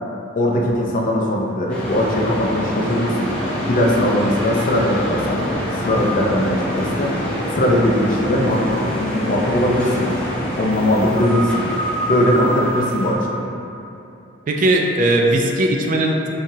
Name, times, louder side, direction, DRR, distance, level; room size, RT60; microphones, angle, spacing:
voice 1, 0.3-10.1 10.6-11.7 12.0-13.4, left 1 dB, 45° left, -1 dB, 0.4 m, -20 dB
sound 1, 1.7-13.1, equal, 5° left, 0.7 m, -25 dB
voice 2, 14.5-16.3, right 1 dB, 40° right, 1 dB, 0.3 m, -18 dB
5.5 x 2.4 x 2.7 m, 2.8 s
head